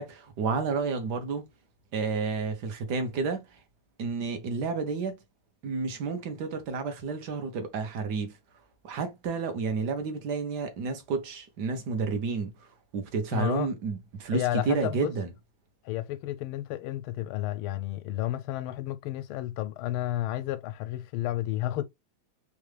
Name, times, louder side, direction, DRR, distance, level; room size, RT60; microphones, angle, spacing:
voice 1, 0.0-1.4 1.9-3.5 4.0-5.2 5.6-8.3 8.8-12.7 12.9-15.3, right 4 dB, 55° right, 1.5 m, -30 dB
voice 2, 13.3-13.7 14.3-15.1 15.8-21.8, left 14 dB, 90° left, 1.5 m, -31 dB
3.9 x 3.5 x 3.3 m
omnidirectional pair, 2.3 m